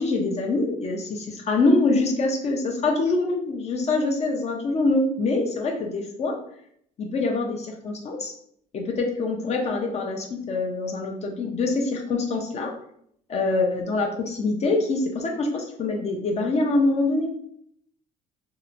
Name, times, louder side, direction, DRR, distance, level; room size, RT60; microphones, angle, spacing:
voice 1, 0.0-6.3 7.0-8.3 8.7-12.7 13.3-17.5, left 3 dB, 40° left, 1 dB, 0.5 m, -24 dB
2.8 x 2.1 x 2.5 m, 0.68 s
cardioid pair, 110°, 17 cm